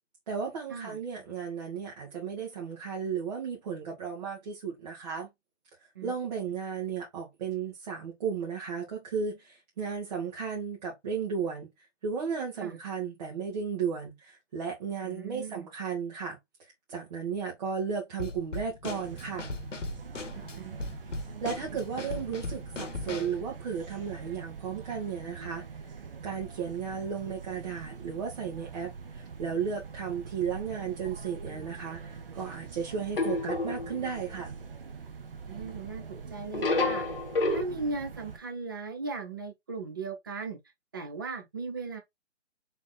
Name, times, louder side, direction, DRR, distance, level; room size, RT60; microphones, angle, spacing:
voice 1, 0.3-5.3 6.0-11.7 12.0-16.4 16.9-19.5 21.4-25.9 26.2-34.6, right 6 dB, 35° right, 1.5 m, -34 dB
voice 2, 15.0-15.7 20.3-20.8 35.5-37.1 37.5-40.6 40.9-42.0, right 4 dB, 20° right, 0.6 m, -37 dB
Drum kit / Snare drum, 18.2-23.4, left 3 dB, 85° left, 1.0 m, -38 dB
sound 1, 19.0-38.4, right 5 dB, 50° right, 1.0 m, -44 dB
sound 2, 33.2-34.2 36.5-37.6, left 3 dB, 50° left, 1.2 m, -29 dB
4.4 x 3.5 x 3.2 m
figure-of-eight pair, 155°, 36 cm